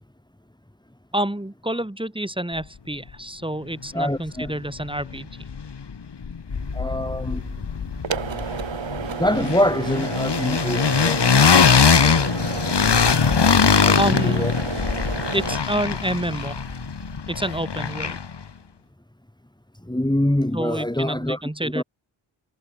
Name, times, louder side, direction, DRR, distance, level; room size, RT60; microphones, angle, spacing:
voice 1, 1.1-5.4 14.0-14.5 15.3-16.6 17.3-18.2 20.5-21.8, right 1 dB, 10° right, 5.4 m, -28 dB
voice 2, 3.9-4.5 6.7-7.4 9.2-11.2 12.0-12.2 12.4-12.6 13.8-14.5 19.9-21.8, left 1 dB, 10° left, 4.7 m, -25 dB
sound 1, 4.4-4.5 4.8-5.9 6.2-18.4, left 6 dB, 55° left, 4.5 m, -21 dB
sound 2, 6.5-17.2, right 7 dB, 70° right, 5.7 m, -33 dB
cardioid pair, 50°, 48 cm